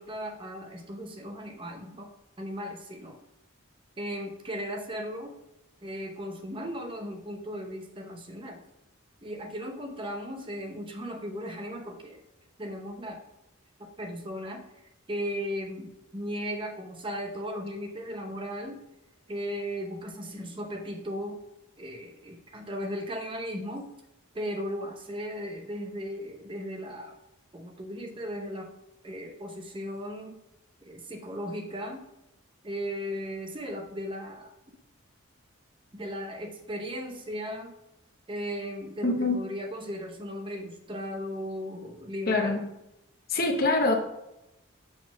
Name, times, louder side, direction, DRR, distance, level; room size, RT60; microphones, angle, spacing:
voice 1, 0.0-2.1 2.4-3.2 4.0-5.4 5.8-8.6 9.2-12.2 12.6-13.2 13.8-14.6 15.1-18.8 19.3-21.4 21.8-23.9 24.3-27.1 27.5-28.7 29.0-30.4 30.8-32.1 32.6-34.5 35.9-37.7 38.3-42.6, equal, 25° right, 4 dB, 0.7 m, -36 dB
voice 2, 39.0-39.4 42.3-42.6 43.3-43.9, left 2 dB, 45° left, 4 dB, 0.9 m, -24 dB
6.3 x 4.1 x 6.0 m, 0.92 s
head